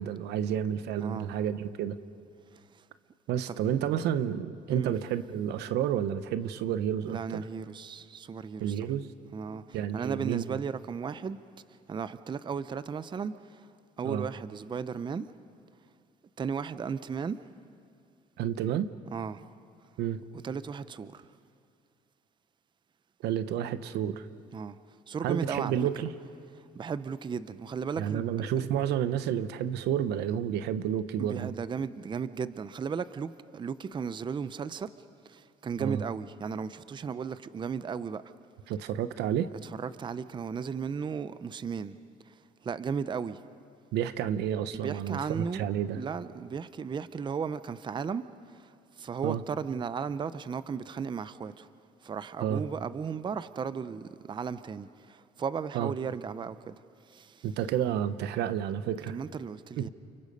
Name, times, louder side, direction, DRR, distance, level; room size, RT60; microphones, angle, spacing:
voice 1, 0.0-2.0 3.3-7.4 8.6-9.1 9.7-10.5 14.0-14.3 18.4-18.9 20.0-20.2 23.2-24.3 25.2-26.1 28.0-31.5 35.8-36.0 38.7-39.5 43.9-46.0 49.2-49.4 52.4-52.6 55.7-55.9 57.4-59.2, right 10 dB, 80° right, 0.9 m, -30 dB
voice 2, 1.0-1.3 2.5-2.8 3.5-3.6 4.7-4.9 7.0-8.9 9.3-11.4 11.9-13.7 14.0-15.3 16.4-17.4 19.1-19.4 20.4-21.3 24.5-24.8 25.1-25.8 26.6-28.5 31.2-34.9 35.2-38.2 39.8-42.0 42.3-43.4 44.7-45.7 45.9-51.7 52.0-57.5 59.1-59.9, right 6 dB, 25° right, 0.6 m, -35 dB
29.5 x 29.0 x 5.4 m
cardioid pair, 110°, 17 cm